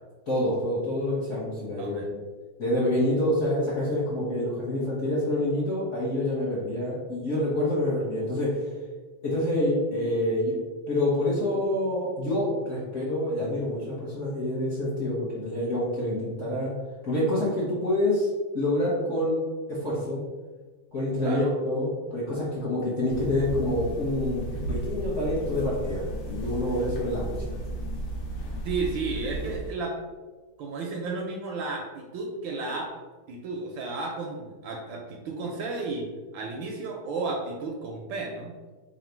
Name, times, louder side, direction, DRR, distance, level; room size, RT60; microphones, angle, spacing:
voice 1, 0.3-2.2 2.6-8.6 9.2-10.5 10.9-16.7 17.0-18.3 18.5-19.4 19.7-20.2 20.9-27.4, left 1 dB, 50° left, -8 dB, 0.9 m, -27 dB
voice 2, 1.8-2.1 21.2-21.5 28.6-30.0 30.6-32.9 33.3-38.5, right 3 dB, 75° right, 0 dB, 1.2 m, -33 dB
sound 1, 23.1-29.8, right 1 dB, 85° left, 1.7 m, -34 dB
3.9 x 2.4 x 4.4 m, 1.3 s
omnidirectional pair, 2.4 m